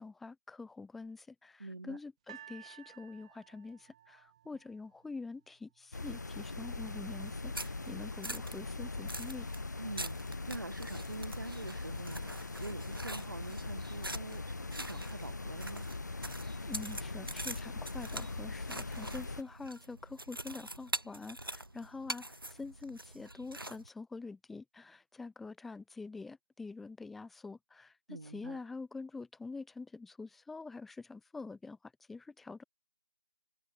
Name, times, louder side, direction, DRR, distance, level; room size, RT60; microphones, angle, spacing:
voice 1, 0.0-9.5 16.7-32.6, left 3 dB, ahead, 1.1 m, -46 dB
voice 2, 1.6-2.0 9.8-12.3 12.6-15.8 28.1-28.6, right 2 dB, 60° right, 6.4 m, -45 dB
sound 1, 2.3-5.5 6.2-6.3, right 11 dB, 15° right, 5.6 m, -55 dB
sound 2, 5.9-19.4, left 3 dB, 55° left, 5.9 m, -41 dB
sound 3, 7.2-23.9, right 1 dB, 85° right, 4.6 m, -45 dB
figure-of-eight pair, 165°, 12 cm